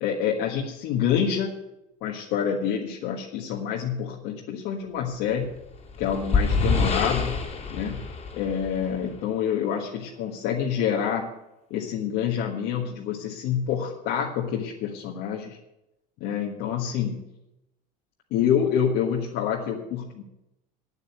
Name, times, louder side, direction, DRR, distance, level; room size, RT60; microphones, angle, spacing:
voice 1, 0.0-1.5 2.0-5.5 6.0-7.4 7.7-8.1 8.3-11.3 11.7-15.6 16.2-17.2 18.3-20.2, left 8 dB, 70° left, -1 dB, 1.6 m, -27 dB
sound 1, 5.5-9.2, left 4 dB, 30° left, 2.2 m, -26 dB
8.9 x 8.8 x 8.5 m, 0.92 s
supercardioid pair, 110°, 20 cm